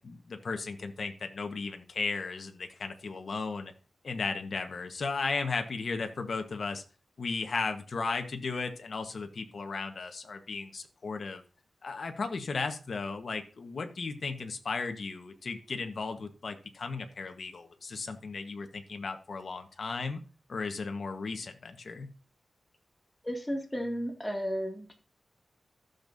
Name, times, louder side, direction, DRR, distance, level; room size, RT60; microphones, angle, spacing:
voice 1, 0.0-3.7 4.0-6.8 7.2-11.4 11.8-20.2 20.5-22.1, left 4 dB, 60° left, 6 dB, 1.3 m, -35 dB
voice 2, 23.2-24.9, equal, 10° left, 2 dB, 2.3 m, -33 dB
14.5 x 6.8 x 2.7 m, 0.36 s
wide cardioid pair, 125°, 0 cm